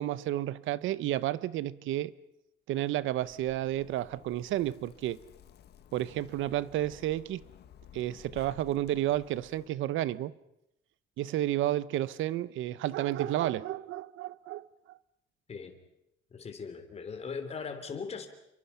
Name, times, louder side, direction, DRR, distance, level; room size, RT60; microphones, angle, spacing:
voice 1, 0.0-2.1 2.7-5.2 5.9-7.4 7.9-10.3 11.2-14.7, right 13 dB, 75° right, 0.9 m, -31 dB
Zipper (clothing), 3.0-9.7, left 9 dB, 55° left, 1.6 m, -55 dB
voice 2, 16.3-18.3, left 5 dB, 30° left, 3.4 m, -39 dB
30.0 x 23.5 x 5.7 m
cardioid pair, 160°, 21 cm